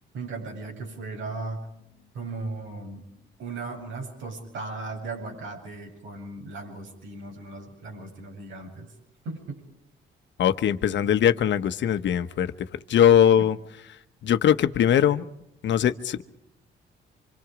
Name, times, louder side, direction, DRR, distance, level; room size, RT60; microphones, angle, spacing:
voice 1, 0.1-1.7 2.1-3.0 3.4-8.9 9.2-9.6, right 3 dB, 75° right, 2 dB, 8.0 m, -37 dB
voice 2, 10.4-12.5 12.9-13.6 14.2-15.3 15.6-16.2, left 9 dB, 65° left, 11 dB, 1.2 m, -21 dB
26.0 x 26.0 x 5.1 m, 0.79 s
cardioid pair, 90°, 20 cm